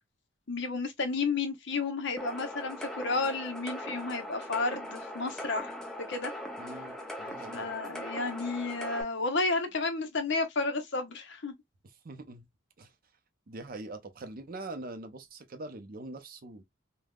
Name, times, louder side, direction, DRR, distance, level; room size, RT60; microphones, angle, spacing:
voice 1, 0.5-6.3 7.5-11.5, left 3 dB, 55° left, 0.8 m, -32 dB
sound 1, 2.2-9.0, equal, 5° left, 0.5 m, -40 dB
voice 2, 6.6-7.7 12.0-12.5 12.8-12.9 13.5-16.6, right 2 dB, 45° right, 0.5 m, -43 dB
3.4 x 2.2 x 2.3 m
head